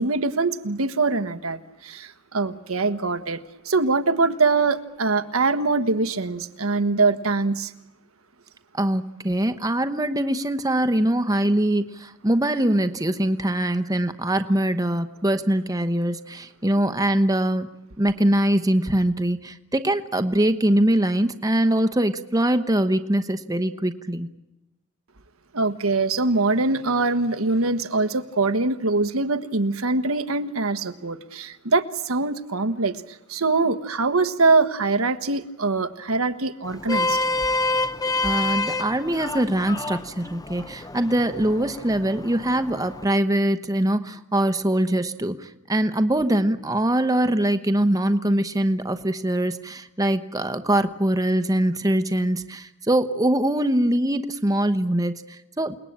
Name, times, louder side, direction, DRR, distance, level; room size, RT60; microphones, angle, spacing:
voice 1, 0.0-3.4 3.6-7.7 25.5-33.0 33.3-37.2, right 3 dB, 80° right, 11 dB, 1.4 m, -23 dB
voice 2, 8.8-17.7 18.0-24.3 38.2-55.8, right 1 dB, 15° right, 10 dB, 1.0 m, -23 dB
Vehicle horn car horn honking, 36.6-43.0, left 2 dB, 20° left, 0.9 m, -28 dB
29.0 x 20.0 x 8.8 m, 0.92 s
head